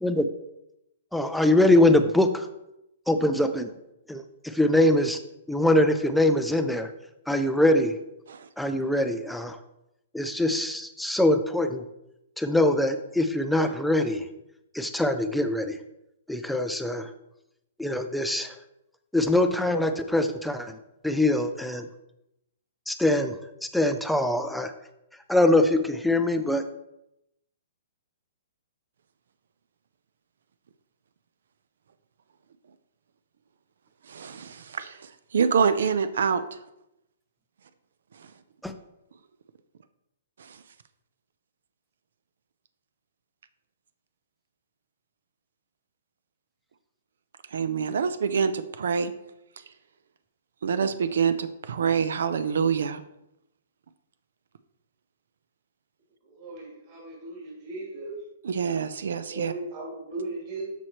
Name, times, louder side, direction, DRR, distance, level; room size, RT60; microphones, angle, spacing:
voice 1, 0.0-0.3 1.1-2.5 3.1-3.7 4.1-5.2 5.5-6.9 7.3-8.0 8.6-9.6 10.1-11.9 12.4-14.3 14.7-15.8 16.3-17.1 17.8-18.6 19.1-20.8 21.0-21.9 22.9-24.7 25.3-26.6 38.6-38.7, left 1 dB, ahead, 8 dB, 0.3 m, -23 dB
voice 2, 34.1-36.4 40.4-40.6 47.5-49.1 50.6-53.0 58.4-59.5, right 6 dB, 70° right, 12 dB, 0.5 m, -26 dB
voice 3, 56.2-58.1 59.3-60.6, right 2 dB, 40° right, -5 dB, 2.8 m, -37 dB
12.5 x 4.4 x 3.0 m, 0.85 s
hypercardioid pair, 170°, 0 cm